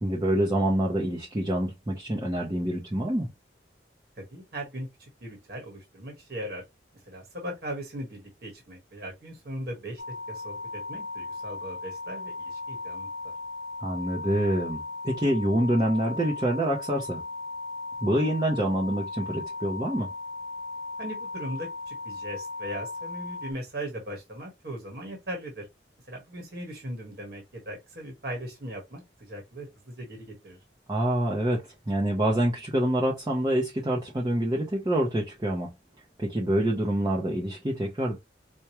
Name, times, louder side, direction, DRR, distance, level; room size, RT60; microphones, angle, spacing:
voice 1, 0.0-3.3 13.8-17.2 18.0-20.1 30.9-35.7 36.2-38.2, right 1 dB, 20° right, 0.6 m, -26 dB
voice 2, 4.2-6.6 7.0-10.0 10.3-13.3 21.0-25.7 26.1-30.6, right 1 dB, 60° right, 1.2 m, -39 dB
sound 1, 10.0-23.5, left 3 dB, 85° left, 1.0 m, -37 dB
4.6 x 2.2 x 2.9 m
head